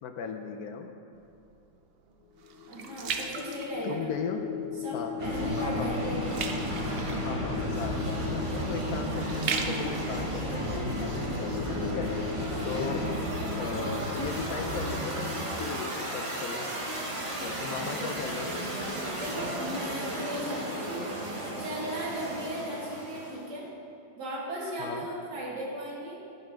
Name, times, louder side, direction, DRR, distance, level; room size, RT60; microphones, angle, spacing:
voice 1, 0.0-0.9 3.8-4.4 4.9-5.1 5.6-5.9 7.2-12.1 12.6-13.1 13.6-16.7 17.4-18.6 24.8-25.1, left 6 dB, 70° left, 5 dB, 1.0 m, -37 dB
sound 1, 1.1-4.4 4.9-5.2 5.5-11.5 12.0-12.1, right 5 dB, 85° right, 0.5 m, -38 dB
sound 2, 2.3-17.4, left 7 dB, 85° left, 1.3 m, -39 dB
voice 2, 2.7-4.1 4.8-6.4 19.2-21.0 21.6-23.7 24.1-26.2, right 1 dB, 70° right, -5 dB, 2.5 m, -36 dB
sound 3, 5.2-23.5, right 1 dB, 25° right, 0.9 m, -33 dB
11.0 x 5.6 x 5.1 m, 2.6 s
omnidirectional pair, 1.9 m